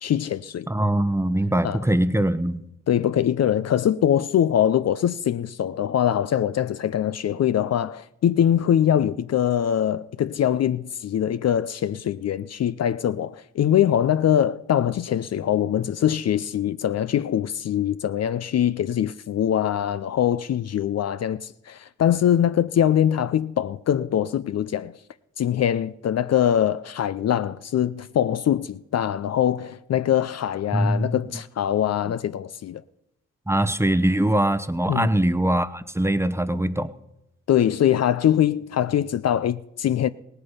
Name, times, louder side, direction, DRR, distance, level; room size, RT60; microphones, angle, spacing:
voice 1, 0.0-0.7 1.6-1.8 2.9-25.0 25.4-32.8 34.9-35.1 37.5-40.1, left 10 dB, 55° left, 0.5 m, -23 dB
voice 2, 0.7-2.6 30.7-31.2 33.5-36.9, right 1 dB, 10° right, 0.9 m, -22 dB
17.5 x 8.2 x 5.6 m
supercardioid pair, 50°, 32 cm